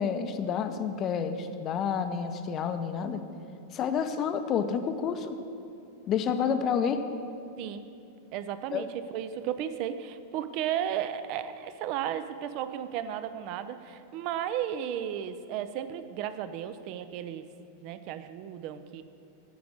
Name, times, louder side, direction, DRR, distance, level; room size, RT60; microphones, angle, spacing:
voice 1, 0.0-3.2 3.7-5.4 6.1-7.0 8.7-8.8, left 7 dB, 30° left, 8 dB, 0.6 m, -29 dB
voice 2, 8.3-8.9 9.1-17.5 17.8-19.0, right 10 dB, 45° right, 12 dB, 0.5 m, -34 dB
9.4 x 5.1 x 7.6 m, 2.6 s
figure-of-eight pair, 90°, 0 cm